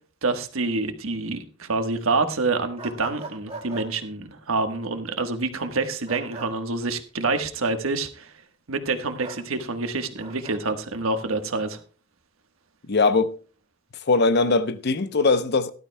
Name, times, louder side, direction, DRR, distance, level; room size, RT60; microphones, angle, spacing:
voice 1, 0.2-8.3 8.7-11.8, right 3 dB, 75° right, 1.3 m, -27 dB
sound 1, 2.8-3.9 6.1-6.5 9.2-9.4 10.2-10.6, right 3 dB, 30° right, 2.2 m, -38 dB
voice 2, 12.9-13.4 14.1-15.7, left 3 dB, 50° left, 0.7 m, -20 dB
17.0 x 12.0 x 2.2 m
head